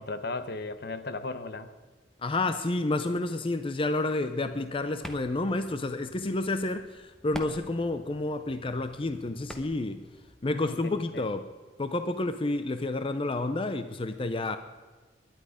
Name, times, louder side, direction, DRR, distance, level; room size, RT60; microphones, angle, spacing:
voice 1, 0.0-1.7 10.4-11.3, left 3 dB, 65° left, 11 dB, 0.9 m, -36 dB
voice 2, 2.2-10.0 10.4-11.5 11.8-14.6, left 2 dB, 30° left, 10 dB, 0.6 m, -30 dB
sound 1, 4.4-10.3, equal, 5° left, 1.1 m, -47 dB
21.0 x 10.5 x 5.0 m, 1.3 s
head